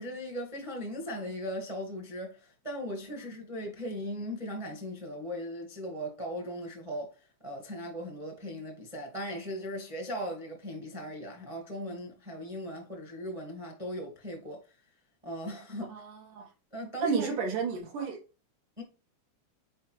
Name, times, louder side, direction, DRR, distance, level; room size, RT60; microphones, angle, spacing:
voice 1, 0.0-7.2 7.4-14.6 15.2-15.9 16.7-17.3 18.8-18.9, equal, 20° right, 0.8 m, -38 dB
voice 2, 15.9-16.5 17.0-18.2, right 5 dB, 85° right, 3.2 m, -32 dB
6.6 x 4.8 x 3.1 m
omnidirectional pair, 3.5 m